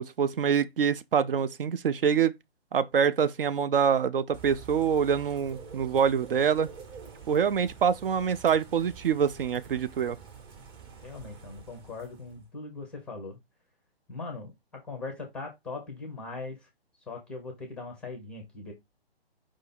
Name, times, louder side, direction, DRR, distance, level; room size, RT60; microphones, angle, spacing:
voice 1, 0.0-2.3 2.7-6.7 7.3-10.2, right 7 dB, 60° right, 0.5 m, -25 dB
Bird / Rain, 4.3-12.5, right 6 dB, 25° right, 0.8 m, -47 dB
voice 2, 11.0-13.4 14.1-16.7 17.1-18.7, left 3 dB, 5° left, 0.5 m, -40 dB
4.9 x 2.7 x 4.1 m
hypercardioid pair, 140°, 32 cm